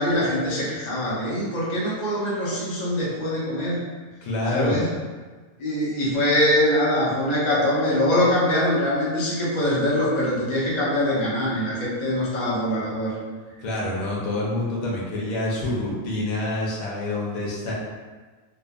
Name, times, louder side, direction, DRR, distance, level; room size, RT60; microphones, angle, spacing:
voice 1, 0.0-3.8 4.5-4.9 5.6-13.1, left 1 dB, 40° left, -7 dB, 0.7 m, -23 dB
voice 2, 4.2-4.8 13.6-17.7, left 1 dB, 85° left, -4 dB, 1.2 m, -27 dB
2.8 x 2.4 x 2.3 m, 1.4 s
omnidirectional pair, 1.4 m